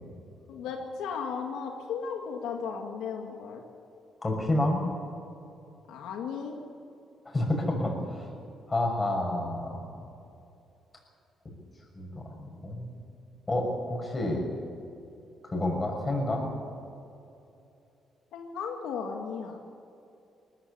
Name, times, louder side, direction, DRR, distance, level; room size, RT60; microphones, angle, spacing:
voice 1, 0.5-3.6 5.9-6.6 18.3-19.6, left 6 dB, 90° left, 3 dB, 2.0 m, -35 dB
voice 2, 4.2-4.8 7.2-8.0 8.7-10.0 11.9-12.9 13.5-14.4 15.4-16.5, left 1 dB, 25° left, 1 dB, 6.4 m, -29 dB
20.0 x 15.0 x 10.0 m, 2.7 s
cardioid pair, 90°, 0 cm